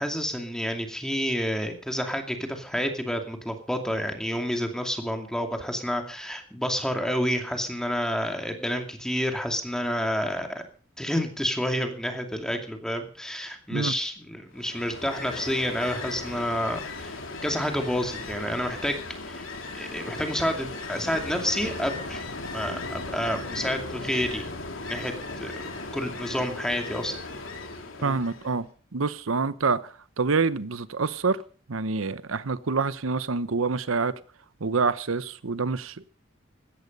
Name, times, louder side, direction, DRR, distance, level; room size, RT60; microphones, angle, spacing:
voice 1, 0.0-10.6 11.0-19.0 19.3-19.5 19.7-22.2 22.5-24.5 24.9-27.1 28.0-28.2, equal, 5° left, 4 dB, 2.4 m, -29 dB
Ocean, 14.5-28.6, left 3 dB, 80° left, 3.3 m, -37 dB
voice 2, 28.0-31.4 31.7-34.1 34.6-36.1, right 4 dB, 90° right, 16 dB, 0.8 m, -27 dB
16.5 x 13.5 x 5.4 m, 0.41 s
head